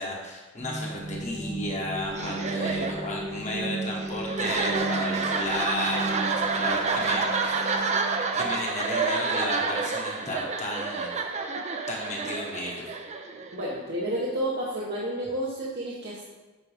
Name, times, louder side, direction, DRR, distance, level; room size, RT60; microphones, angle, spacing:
voice 1, 0.0-7.6 8.4-11.1 11.9-12.8, left 1 dB, 35° left, -2 dB, 1.3 m, -33 dB
sound 1, 0.6-8.4, right 2 dB, 10° right, 1.1 m, -35 dB
sound 2, 2.1-13.8, right 4 dB, 30° right, 0.5 m, -29 dB
voice 2, 13.5-16.2, right 1 dB, 50° right, -5 dB, 0.9 m, -31 dB
8.4 x 4.6 x 3.4 m, 1.2 s
head